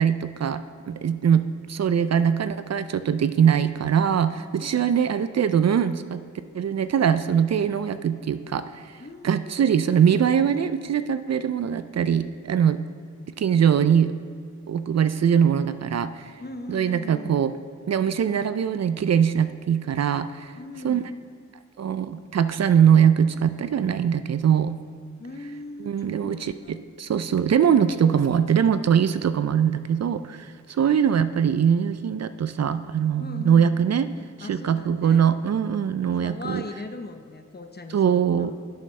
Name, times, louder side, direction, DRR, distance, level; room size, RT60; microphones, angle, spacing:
voice 1, 0.0-6.2 6.5-9.0 9.2-12.8 13.4-14.1 14.7-16.3 16.7-17.5 17.9-20.5 20.8-21.1 21.8-24.8 25.8-34.1 34.4-36.6 37.9-38.5, right 8 dB, 55° right, 12 dB, 0.4 m, -22 dB
voice 2, 4.6-5.2 9.0-9.5 16.4-17.4 20.6-21.1 25.2-26.9 30.8-31.0 33.2-33.7 34.4-35.3 36.1-38.6, left 3 dB, 30° left, 7 dB, 0.8 m, -40 dB
11.0 x 7.6 x 3.3 m, 2.2 s
cardioid pair, 50°, 31 cm